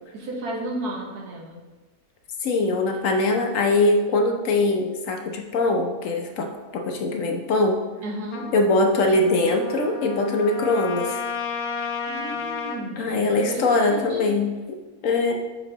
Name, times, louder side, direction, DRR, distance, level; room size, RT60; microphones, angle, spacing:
voice 1, 0.1-1.6 8.0-8.5 12.1-14.4, right 1 dB, 75° right, -2 dB, 1.7 m, -33 dB
voice 2, 2.4-7.8 8.5-11.2 13.0-14.8 15.0-15.3, left 2 dB, 60° left, 3 dB, 1.0 m, -22 dB
Trumpet, 8.3-12.8, left 5 dB, 85° left, 1.3 m, -32 dB
6.9 x 4.5 x 3.9 m, 1.2 s
omnidirectional pair, 1.7 m